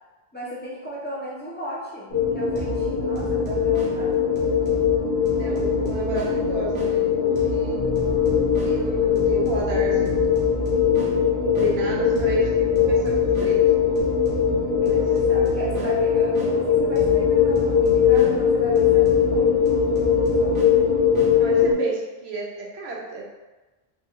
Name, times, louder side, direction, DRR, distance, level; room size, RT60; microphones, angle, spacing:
voice 1, 0.3-2.1 2.3-4.5 14.8-19.5 20.4-20.8, equal, 15° left, -8 dB, 0.5 m, -36 dB
sound 1, 2.1-21.7, left 7 dB, 65° left, 1.1 m, -21 dB
sound 2, 2.5-6.9 7.3-11.7 12.1-16.5 16.9-21.3, right 4 dB, 60° right, 1.0 m, -35 dB
voice 2, 5.4-7.8 8.6-10.1 10.5-10.6 11.6-13.6 14.8-15.0 21.4-23.3, right 3 dB, 80° right, -4 dB, 1.0 m, -32 dB
Bass guitar, 7.8-14.0, equal, 30° left, 1.0 m, -38 dB
3.0 x 2.3 x 2.9 m, 1.1 s
omnidirectional pair, 1.1 m